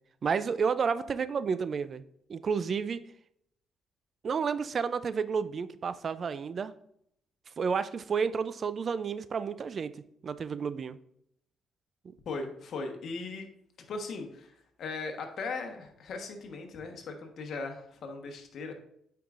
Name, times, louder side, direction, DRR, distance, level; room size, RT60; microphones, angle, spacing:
voice 1, 0.2-2.0 2.3-3.0 4.2-6.7 7.6-9.9 10.2-11.0, right 6 dB, 45° right, 14 dB, 0.4 m, -31 dB
voice 2, 12.3-13.5 13.9-18.7, left 3 dB, 65° left, 4 dB, 1.2 m, -38 dB
8.9 x 4.7 x 2.5 m, 0.71 s
cardioid pair, 90°, 0 cm